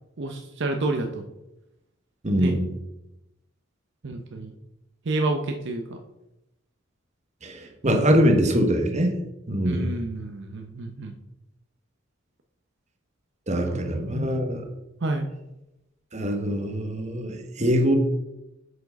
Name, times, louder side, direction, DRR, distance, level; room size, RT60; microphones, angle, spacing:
voice 1, 0.2-1.3 2.4-2.5 4.0-4.5 5.1-6.0 9.6-11.1 13.5-14.4 15.0-15.3, right 2 dB, 65° right, 4 dB, 0.7 m, -29 dB
voice 2, 2.2-2.7 7.4-9.1 9.5-9.9 13.5-14.7 16.1-18.0, equal, 35° right, 3 dB, 1.1 m, -23 dB
6.5 x 4.7 x 5.2 m, 0.92 s
head